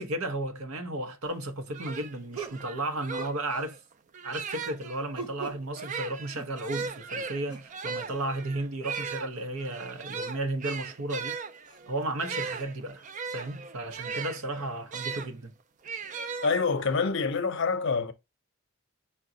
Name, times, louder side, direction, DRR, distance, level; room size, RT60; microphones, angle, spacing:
voice 1, 0.0-3.8 4.2-11.3 11.9-13.0 13.3-15.5, right 2 dB, 75° right, 0.8 m, -34 dB
sound 1, 1.2-1.4 2.3-2.6 3.2-3.7 5.1-5.7 6.3-7.0 7.5-7.7 9.3-9.4 10.1-10.3 10.8-11.0 11.7-11.8 12.5-12.6, right 4 dB, 20° right, 0.8 m, -42 dB
sound 2, 1.4-1.5 1.7-5.0 5.7-15.3 15.8-16.9, right 5 dB, 35° right, 0.4 m, -38 dB
voice 2, 16.4-18.1, left 4 dB, 55° left, 0.6 m, -26 dB
5.9 x 2.2 x 3.7 m
head